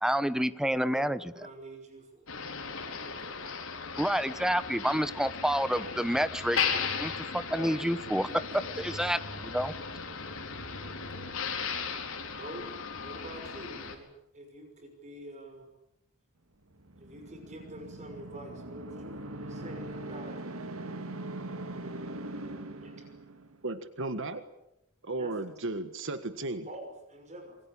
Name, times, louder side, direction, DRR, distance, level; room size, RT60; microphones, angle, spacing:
voice 1, 0.0-1.3 4.0-6.6 7.0-8.3 8.8-9.2 9.5-9.7, equal, 5° right, 14 dB, 1.0 m, -28 dB
voice 2, 0.9-3.4 3.8-4.0 8.3-8.8 10.1-10.4 10.7-11.3 12.3-12.7 13.0-15.7 17.0-19.2 19.5-20.5 22.8-23.0 25.2-25.3 26.7-27.6, right 1 dB, 35° right, 5 dB, 5.8 m, -47 dB
Motor vehicle (road), 2.3-14.0, left 6 dB, 70° left, 4.6 m, -36 dB
sound 1, 16.7-23.7, right 1 dB, 80° right, 2.3 m, -41 dB
voice 3, 23.6-24.4 25.0-26.7, right 2 dB, 65° right, 10 dB, 1.7 m, -35 dB
27.0 x 23.0 x 8.7 m, 0.81 s
head